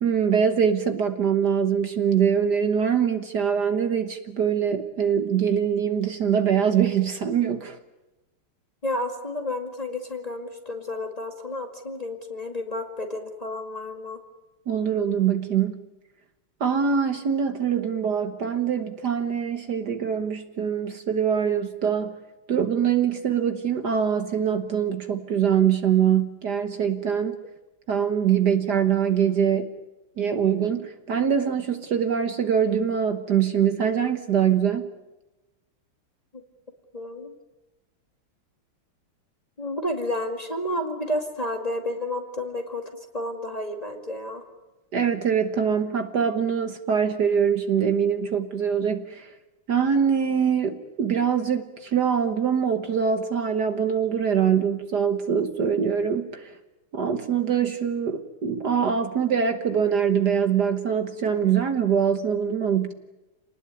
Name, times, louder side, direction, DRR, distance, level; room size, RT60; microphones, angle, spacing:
voice 1, 0.0-7.8 14.7-15.8 16.6-22.2 22.5-27.4 27.9-29.7 30.2-34.9 44.9-49.3 49.7-56.6 56.9-62.9, right 7 dB, 55° right, 8 dB, 1.7 m, -23 dB
voice 2, 8.8-14.2 36.3-36.4 36.9-37.3 39.6-42.8 43.1-44.4, left 1 dB, 20° left, 4 dB, 2.1 m, -31 dB
28.0 x 19.5 x 9.5 m, 1.0 s
omnidirectional pair, 2.3 m